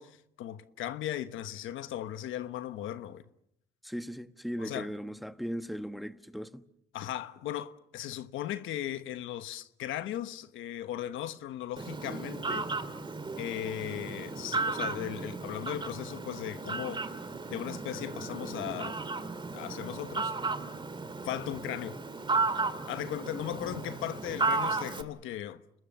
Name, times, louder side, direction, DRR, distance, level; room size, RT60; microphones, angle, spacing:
voice 1, 0.0-3.2 4.6-4.9 6.9-12.7 13.4-17.1 17.5-19.0 19.5-20.3 21.2-22.0 22.9-25.6, left 12 dB, 90° left, 1.2 m, -37 dB
voice 2, 3.8-6.6, equal, ahead, 1.2 m, -38 dB
Fowl, 11.8-25.0, right 3 dB, 25° right, 2.3 m, -34 dB
28.5 x 20.5 x 6.9 m
cardioid pair, 90°, 20 cm